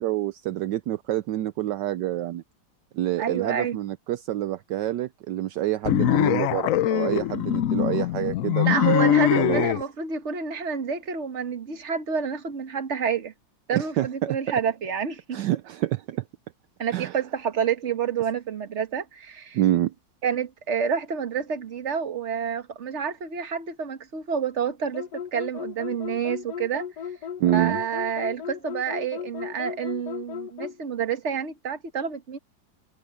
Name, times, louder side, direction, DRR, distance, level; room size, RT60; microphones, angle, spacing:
voice 1, 0.0-2.4 2.9-9.7 13.7-14.4 15.3-16.2 16.9-17.2 19.5-19.9 27.4-27.8, right 14 dB, 75° right, 1.2 m, -27 dB
voice 2, 3.2-3.8 8.6-13.3 13.7-15.4 16.8-19.6 20.2-26.9 27.5-32.4, right 7 dB, 40° right, 1.6 m, -28 dB
sound 1, 5.9-9.8, left 13 dB, 85° left, 0.7 m, -22 dB
sound 2, 24.9-30.8, left 8 dB, 65° left, 1.3 m, -35 dB
omnidirectional pair, 2.0 m